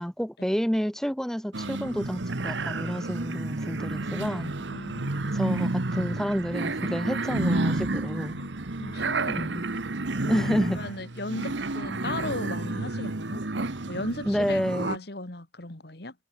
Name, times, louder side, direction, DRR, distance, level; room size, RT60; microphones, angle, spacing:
voice 1, 0.0-4.5 5.3-8.4 9.4-9.7 10.3-10.8 14.3-15.0, equal, 5° left, 2.2 m, -29 dB
sound 1, 1.5-15.0, right 2 dB, 80° right, 1.4 m, -30 dB
voice 2, 4.7-5.4 8.4-8.5 8.8-9.9 10.2-13.4 13.9-16.1, left 2 dB, 60° left, 2.3 m, -37 dB
head